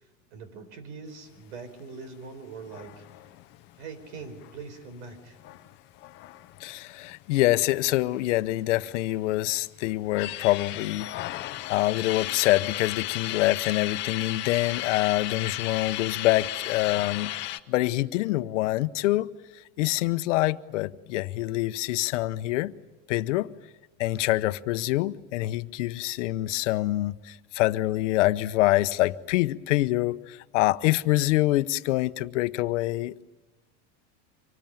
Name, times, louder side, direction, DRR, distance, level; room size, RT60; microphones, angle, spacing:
voice 1, 0.3-3.0 3.8-5.4, right 4 dB, 75° right, 4.6 m, -42 dB
sound 1, 2.6-7.8 8.1-8.2 8.4-9.4 9.8-17.6, left 16 dB, 30° left, 0.7 m, -35 dB
voice 2, 6.6-17.3 17.7-22.7 23.1-23.5 24.0-33.2, left 17 dB, 85° left, 0.9 m, -26 dB
25.5 x 20.0 x 9.0 m
supercardioid pair, 175°, 36 cm